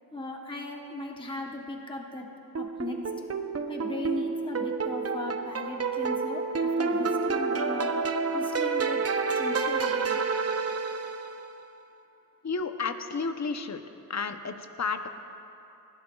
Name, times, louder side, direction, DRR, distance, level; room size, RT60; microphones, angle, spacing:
voice 1, 0.1-2.3 2.5-3.0 3.7-7.9 8.3-9.1 9.3-10.2, left 2 dB, 15° left, 1 dB, 1.0 m, -37 dB
sound 1, 2.5-11.4, right 4 dB, 45° right, 0.7 m, -29 dB
voice 2, 12.4-13.8 14.1-15.1, left 4 dB, 50° left, 8 dB, 0.7 m, -32 dB
20.0 x 15.5 x 2.3 m, 2.9 s
wide cardioid pair, 95°, 35 cm